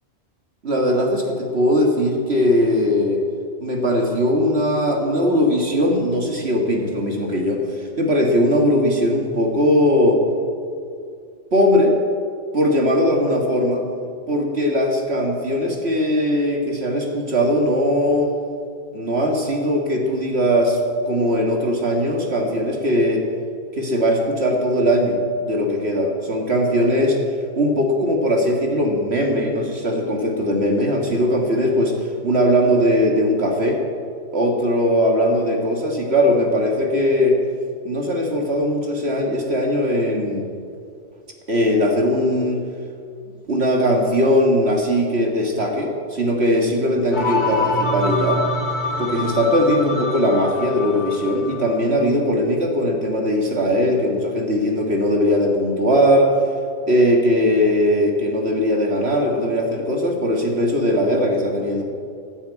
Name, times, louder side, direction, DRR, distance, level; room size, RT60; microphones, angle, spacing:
voice 1, 0.6-3.2 3.6-10.2 11.5-12.0 12.5-13.8 14.3-18.3 18.9-20.8 21.1-23.3 23.7-27.2 27.6-33.8 34.3-37.4 37.8-40.5 41.5-42.6 43.5-48.4 49.0-56.4 56.9-61.8, equal, 65° right, 0 dB, 2.1 m, -19 dB
sound 1, 47.1-51.7, left 2 dB, 70° left, 2.3 m, -25 dB
15.0 x 9.2 x 8.3 m, 2.3 s
omnidirectional pair, 1.2 m